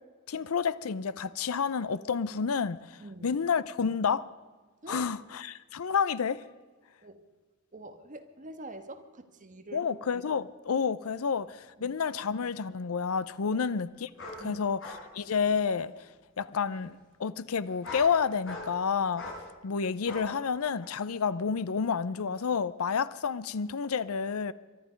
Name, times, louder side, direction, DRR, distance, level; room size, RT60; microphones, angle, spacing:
voice 1, 0.3-4.3 4.9-6.4 9.7-14.1 14.4-14.8 15.1-15.9 16.4-19.3 19.6-24.5, left 6 dB, 85° left, 0.5 m, -30 dB
voice 2, 3.0-3.3 4.8-5.0 7.0-7.2 7.7-10.0 11.8-12.0 13.5-13.7 14.4-14.6, right 2 dB, 40° right, 1.4 m, -45 dB
sound 1, 14.2-14.4 14.8-15.0 15.4-15.9 16.7-16.8 17.6-18.1 18.4-18.8 19.2-19.4 20.1-20.3 20.8-20.9, left 2 dB, 65° left, 4.8 m, -41 dB
23.0 x 12.0 x 5.1 m
head